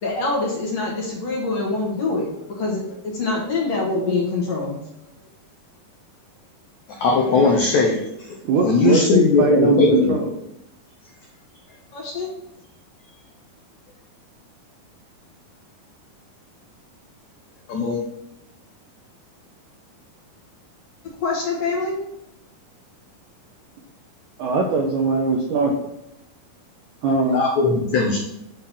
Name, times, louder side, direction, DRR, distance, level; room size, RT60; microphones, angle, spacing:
voice 1, 0.0-4.8 11.9-12.3 21.2-22.0, left 3 dB, 55° left, -3 dB, 2.0 m, -25 dB
voice 2, 7.0-8.0 8.6-10.1 17.7-18.0 27.3-28.2, left 4 dB, 85° left, 1 dB, 1.6 m, -18 dB
voice 3, 8.5-10.3 24.4-25.8 27.0-27.5, right 3 dB, 85° right, 1 dB, 1.8 m, -20 dB
8.3 x 3.8 x 5.9 m, 0.85 s
omnidirectional pair, 4.5 m